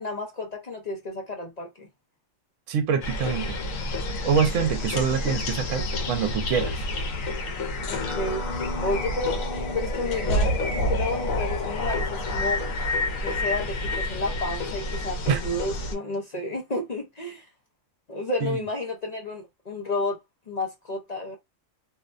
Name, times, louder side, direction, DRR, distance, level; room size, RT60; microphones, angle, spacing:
voice 1, 0.0-1.9 7.9-12.6 13.2-17.5 18.1-20.2 20.5-21.4, left 2 dB, 50° left, 0.5 m, -31 dB
voice 2, 2.7-3.6 4.2-6.8 15.3-15.4 18.4-18.6, right 7 dB, 70° right, 1.0 m, -25 dB
sound 1, 3.0-15.9, left 1 dB, 75° left, 1.1 m, -28 dB
2.7 x 2.1 x 2.4 m
omnidirectional pair, 1.4 m